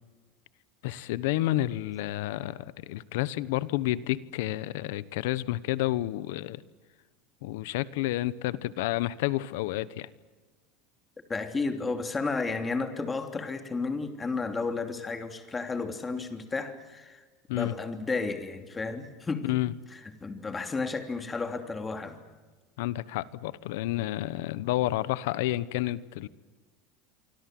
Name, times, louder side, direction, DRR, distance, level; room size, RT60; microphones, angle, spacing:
voice 1, 0.8-6.6 7.4-10.1 17.5-17.7 19.4-19.7 22.8-26.3, left 16 dB, 80° left, 18 dB, 1.0 m, -30 dB
voice 2, 11.3-17.2 17.5-19.6 19.9-22.2, left 4 dB, 15° left, 7 dB, 2.9 m, -32 dB
27.0 x 25.0 x 7.8 m, 1.4 s
supercardioid pair, 130°, 0 cm